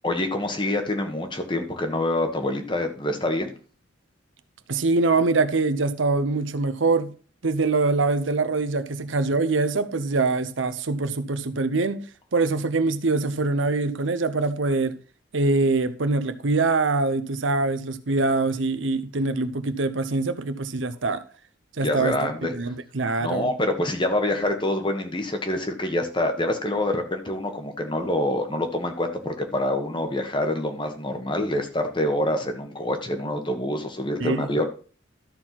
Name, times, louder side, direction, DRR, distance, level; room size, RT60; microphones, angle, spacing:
voice 1, 0.0-3.5 21.8-22.5 23.2-34.6, left 1 dB, 25° left, 1.4 m, -26 dB
voice 2, 4.7-7.1 7.4-12.0 12.3-14.9 15.3-21.2 21.8-23.5 34.2-34.5, right 3 dB, 85° right, 0.8 m, -24 dB
13.0 x 4.4 x 5.9 m
head